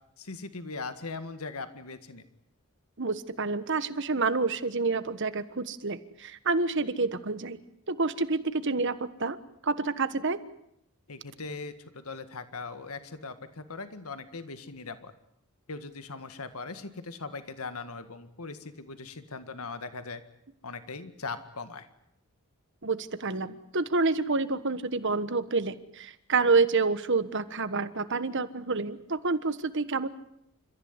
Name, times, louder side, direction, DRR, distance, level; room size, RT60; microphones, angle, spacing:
voice 1, 0.2-2.2 11.1-15.1 15.7-20.2 20.6-21.9, left 4 dB, 75° left, 10 dB, 1.8 m, -40 dB
voice 2, 3.0-7.6 7.9-9.4 9.6-10.4 22.8-30.1, right 3 dB, 55° right, 13 dB, 1.4 m, -28 dB
30.0 x 15.0 x 9.7 m, 0.75 s
head